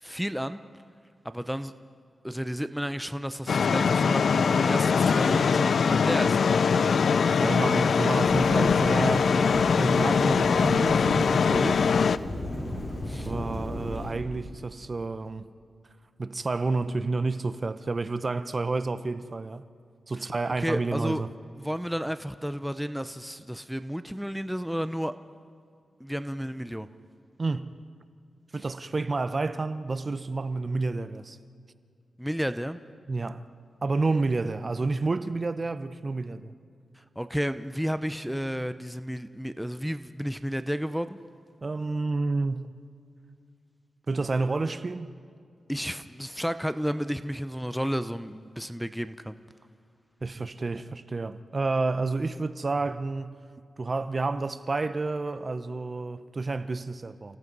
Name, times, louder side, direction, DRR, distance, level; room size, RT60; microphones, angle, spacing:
voice 1, 0.0-0.6 1.2-1.7 2.2-6.6 13.1-13.3 20.6-21.2 21.6-25.1 26.0-26.9 32.2-32.8 37.0-41.2 45.7-49.4, equal, ahead, 0.7 m, -32 dB
sound 1, 3.5-12.2, left 5 dB, 70° left, 0.5 m, -22 dB
voice 2, 7.4-11.8 13.3-15.5 16.2-19.7 20.1-21.3 27.4-27.7 28.5-31.4 33.1-33.4 33.8-36.5 41.6-42.7 44.1-45.1 50.2-53.3 53.8-57.4, right 3 dB, 40° right, 0.8 m, -30 dB
Thunderstorm / Rain, 8.2-14.1, left 1 dB, 40° left, 6.0 m, -36 dB
29.5 x 17.0 x 5.4 m
cardioid pair, 75°, 0 cm